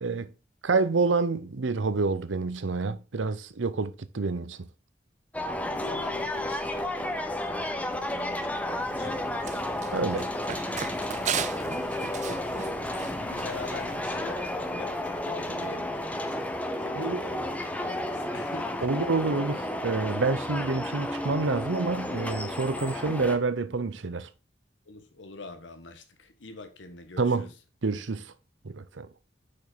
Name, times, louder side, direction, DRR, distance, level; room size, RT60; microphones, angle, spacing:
voice 1, 0.0-0.3 0.6-4.7 9.9-10.3 16.9-17.2 18.8-24.3 27.2-27.5 27.8-28.3 28.6-29.1, right 4 dB, 85° right, 0.7 m, -28 dB
sound 1, 5.3-23.4, left 1 dB, 10° left, 0.7 m, -32 dB
voice 2, 5.6-10.4 12.2-17.5 17.8-19.0 24.9-27.5, left 2 dB, 85° left, 1.3 m, -45 dB
Run, 8.8-13.9, right 7 dB, 40° right, 0.5 m, -37 dB
6.7 x 5.3 x 4.1 m
head